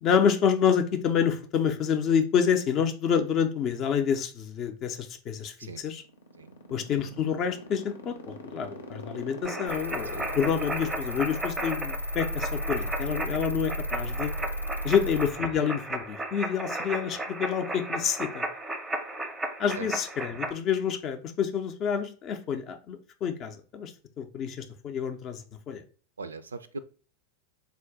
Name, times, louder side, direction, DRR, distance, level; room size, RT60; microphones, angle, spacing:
voice 1, 0.0-6.0 6.7-14.3 14.8-18.4 19.6-23.9 24.2-25.8, left 7 dB, 35° left, 6 dB, 0.5 m, -28 dB
sound 1, 5.9-12.5, left 3 dB, 70° left, 0.8 m, -42 dB
sound 2, 9.4-20.5, right 2 dB, 10° right, 0.6 m, -35 dB
sound 3, 9.7-15.3, equal, 85° left, 0.3 m, -34 dB
voice 2, 26.2-26.8, right 3 dB, 70° right, 12 dB, 0.3 m, -40 dB
3.8 x 2.5 x 3.5 m, 0.38 s
figure-of-eight pair, 90°, 0 cm